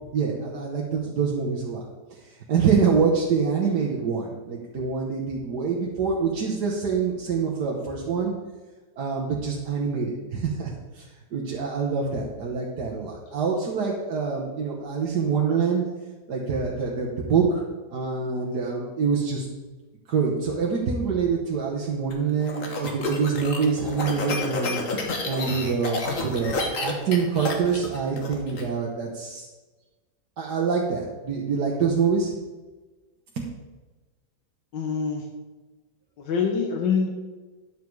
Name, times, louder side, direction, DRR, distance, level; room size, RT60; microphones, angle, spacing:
voice 1, 0.1-1.8 2.5-8.3 9.0-11.1 11.3-15.8 16.3-17.6 17.9-19.5 20.1-24.8 25.2-29.5 30.4-32.3 33.4-33.5, right 5 dB, 65° right, -2 dB, 1.6 m, -25 dB
sound 1, 22.1-28.6, left 2 dB, 50° left, 1.6 m, -30 dB
voice 2, 34.7-35.3 36.2-37.1, left 6 dB, 85° left, 2 dB, 1.7 m, -25 dB
10.0 x 7.2 x 4.7 m, 1.3 s
omnidirectional pair, 1.9 m